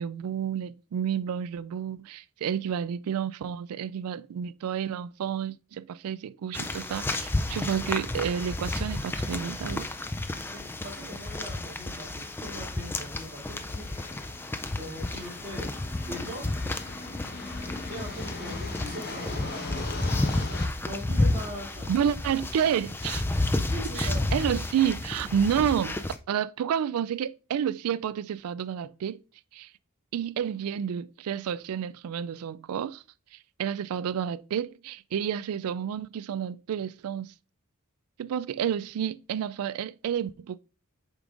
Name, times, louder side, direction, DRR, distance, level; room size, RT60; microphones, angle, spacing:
voice 1, 0.0-9.9 21.9-23.2 24.0-26.0 26.3-29.2 29.5-29.7 30.1-33.0 33.6-37.3 38.2-40.6, right 8 dB, 75° right, 0.3 m, -30 dB
sound 1, 6.5-26.2, left 2 dB, 10° left, 0.3 m, -31 dB
voice 2, 10.5-13.9 14.7-15.7 16.1-16.5 17.9-19.9 20.8-22.2 23.7-24.3, equal, 30° right, 2.8 m, -41 dB
sound 2, 13.4-20.6, left 2 dB, 45° left, 1.2 m, -40 dB
8.0 x 5.2 x 2.5 m
head